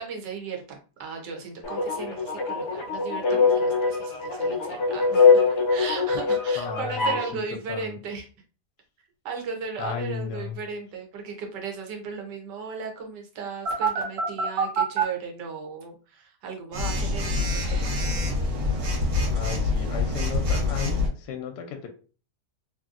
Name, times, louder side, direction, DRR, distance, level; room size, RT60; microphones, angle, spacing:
voice 1, 0.0-5.4 5.7-8.3 9.2-17.8, right 5 dB, 85° right, 2 dB, 1.4 m, -36 dB
sound 1, 1.6-7.3, left 5 dB, 60° left, 0.8 m, -23 dB
voice 2, 6.6-8.0 9.8-10.6 19.3-21.9, left 7 dB, 75° left, 4 dB, 1.1 m, -34 dB
Telephone, 13.7-15.0 16.7-21.1, left 1 dB, 65° right, 1.3 m, -25 dB
3.1 x 2.7 x 2.4 m, 0.37 s
omnidirectional pair, 1.8 m